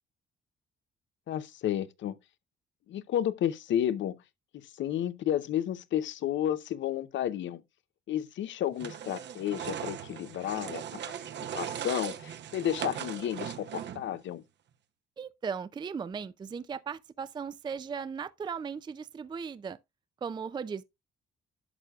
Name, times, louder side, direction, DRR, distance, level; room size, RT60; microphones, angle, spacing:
voice 1, 1.3-2.2 2.9-4.2 4.8-7.6 8.1-11.1 11.5-14.4, left 11 dB, 70° left, 0.7 m, -32 dB
sound 1, 8.8-14.2, right 9 dB, 60° right, 0.8 m, -39 dB
voice 2, 15.2-19.8 20.2-20.8, right 6 dB, 20° right, 0.4 m, -37 dB
11.0 x 6.6 x 2.3 m
cardioid pair, 90°, 20 cm